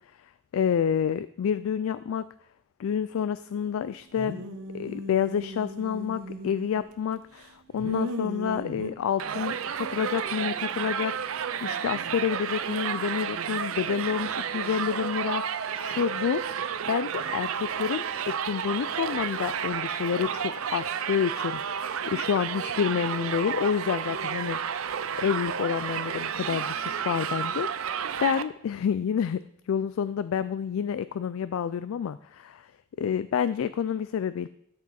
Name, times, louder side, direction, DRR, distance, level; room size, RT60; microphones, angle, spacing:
voice 1, 0.5-2.2 2.8-4.4 4.7-16.5 16.9-21.6 22.1-24.9 25.2-27.7 28.2-32.7 33.0-34.5, left 7 dB, 65° left, 14 dB, 0.3 m, -29 dB
sound 1, 4.2-7.0 7.4-8.9, right 1 dB, 90° right, 1.0 m, -37 dB
Crowd, 9.2-28.4, right 7 dB, 70° right, 0.5 m, -31 dB
12.5 x 6.1 x 4.2 m, 0.73 s
head